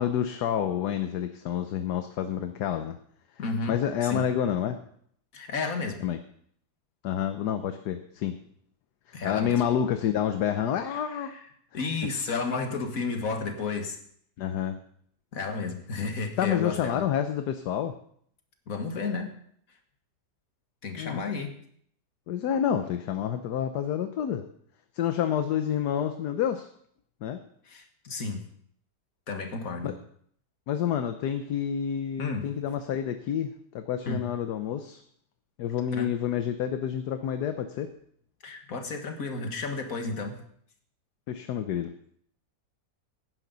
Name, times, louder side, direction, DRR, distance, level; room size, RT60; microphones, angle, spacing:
voice 1, 0.0-3.0 3.7-4.8 6.0-6.2 7.0-8.4 9.1-11.3 14.4-14.8 16.4-18.0 20.9-21.2 22.3-24.4 24.9-26.7 27.2-27.4 29.8-29.9 30.7-35.0 35.6-37.9 41.3-41.9, left 9 dB, 70° left, 8 dB, 1.3 m, -28 dB
voice 2, 3.4-3.8 4.0-4.3 5.3-6.0 9.1-9.6 11.3-11.4 11.7-14.0 15.3-17.0 18.7-19.3 20.8-21.5 27.7-28.4 29.3-29.9 32.2-32.5 34.1-34.2 35.9-36.1 38.4-40.4, left 4 dB, 55° left, 5 dB, 2.0 m, -32 dB
17.5 x 10.5 x 4.0 m, 0.64 s
omnidirectional pair, 1.8 m